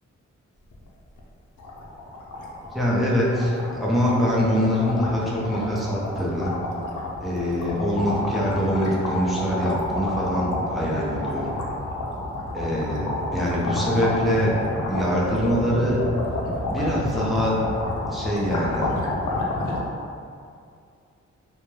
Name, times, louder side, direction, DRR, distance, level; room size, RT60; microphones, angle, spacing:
sound 1, 0.7-0.9 1.2-1.3 1.6-19.8, left 2 dB, 90° left, 0.5 m, -29 dB
voice 1, 2.7-6.5 7.2-11.5 12.5-14.5 14.9-16.0 16.7-17.6 18.1-18.9, equal, ahead, -6 dB, 0.5 m, -24 dB
2.2 x 2.1 x 3.1 m, 2.3 s
wide cardioid pair, 90°, 29 cm